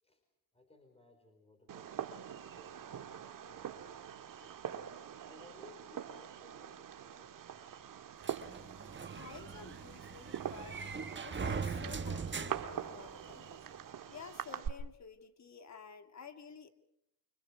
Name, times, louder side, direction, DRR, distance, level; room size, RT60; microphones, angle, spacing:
voice 1, 0.5-5.0 5.2-7.9, left 2 dB, 10° left, 5 dB, 4.9 m, -61 dB
Fireworks, 1.7-14.7, right 9 dB, 45° right, 1.8 m, -44 dB
sound 1, 8.2-13.5, right 5 dB, 25° right, 1.5 m, -41 dB
voice 2, 9.1-10.8 11.2-13.7 14.1-16.7, left 6 dB, 35° left, 8 dB, 2.5 m, -52 dB
29.0 x 25.5 x 4.8 m, 0.79 s
cardioid pair, 100°, 47 cm